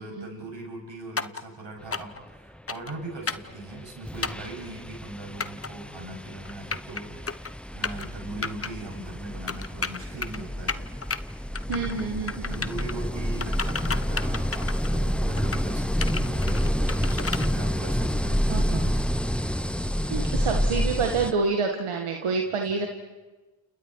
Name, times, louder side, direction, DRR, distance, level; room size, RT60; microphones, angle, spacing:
voice 1, 0.0-7.3 7.7-10.9 11.3-11.4 11.8-19.0 22.6-22.9, right 2 dB, 65° right, 1 dB, 7.8 m, -40 dB
sound 1, 1.2-1.4 1.9-2.2 2.7-2.9 3.3-3.5 4.2-4.5 5.4-5.7 6.5-7.0 7.3-7.5 7.8-8.1 8.4-8.7 9.5-10.4 10.7-11.2 11.5-12.0 12.3-12.9 13.4-15.0 15.4-15.6 16.0-17.5, left 4 dB, 30° left, 1.0 m, -32 dB
sound 2, 3.5-3.7 4.0-21.3, equal, ahead, 0.9 m, -28 dB
voice 2, 11.7-12.6 18.5-18.8 20.1-22.9, right 4 dB, 85° right, 2 dB, 1.9 m, -28 dB
29.5 x 29.0 x 4.8 m, 1.2 s
cardioid pair, 50°, 49 cm